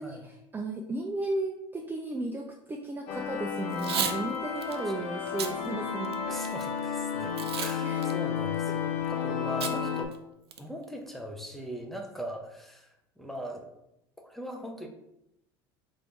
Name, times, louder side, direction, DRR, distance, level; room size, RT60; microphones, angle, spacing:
voice 1, 0.0-6.5 7.8-8.1, right 2 dB, 15° right, 3 dB, 0.4 m, -35 dB
sound 1, 3.1-10.0, left 7 dB, 60° left, 0.7 m, -32 dB
Packing tape duct tape / Tearing, 3.7-4.2 4.6-4.8 5.3-5.5 6.0-6.6 7.4-7.8 8.0-8.1 9.6-9.8 10.1-10.2 10.5-10.8, right 8 dB, 90° right, 0.4 m, -32 dB
voice 2, 4.9-5.8 6.3-10.1 10.6-13.7 14.2-14.9, equal, ahead, 2 dB, 0.8 m, -41 dB
3.4 x 2.6 x 4.5 m, 0.86 s
hypercardioid pair, 80°, 13 cm